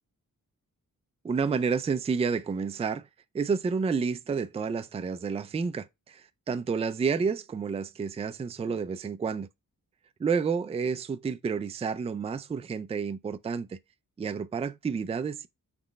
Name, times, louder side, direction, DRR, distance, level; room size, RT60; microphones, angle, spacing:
voice 1, 1.2-3.1 3.3-9.5 10.2-13.8 14.2-15.5, right 5 dB, 20° right, 0.3 m, -30 dB
6.0 x 3.1 x 5.1 m
wide cardioid pair, 170°, 33 cm